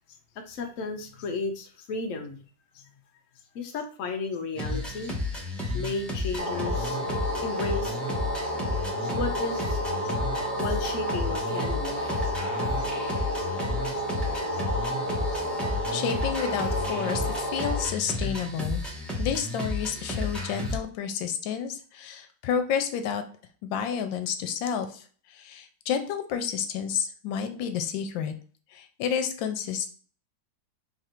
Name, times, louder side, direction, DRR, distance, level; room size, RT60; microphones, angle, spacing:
voice 1, 0.5-2.4 2.7-2.8 3.5-5.2 5.7-7.0 7.4-8.0 9.0-10.1 10.6-12.3 12.8-12.9 13.4-13.5 14.5-14.6 15.3-15.4, left 3 dB, 70° left, 3 dB, 0.7 m, -34 dB
sound 1, 4.5-20.8, left 2 dB, ahead, 0.5 m, -32 dB
sound 2, 6.4-17.9, equal, 30° left, 1.1 m, -31 dB
voice 2, 15.9-18.8 19.2-23.2 23.6-25.0 25.3-28.3 28.7-29.9, left 8 dB, 85° left, 7 dB, 1.3 m, -30 dB
3.5 x 2.5 x 4.2 m, 0.43 s
omnidirectional pair, 2.0 m